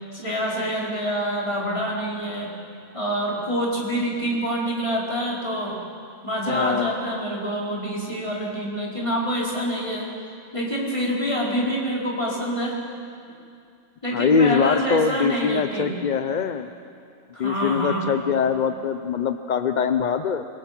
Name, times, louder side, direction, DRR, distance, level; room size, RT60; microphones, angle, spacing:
voice 1, 0.1-2.5 2.9-5.7 6.2-10.1 10.5-12.8 14.0-15.9 17.3-18.1, equal, 20° left, -5 dB, 4.9 m, -26 dB
voice 2, 6.5-6.9 14.1-16.7 17.4-20.5, left 6 dB, 50° left, 9 dB, 0.6 m, -23 dB
26.0 x 23.5 x 6.0 m, 2.4 s
omnidirectional pair, 1.4 m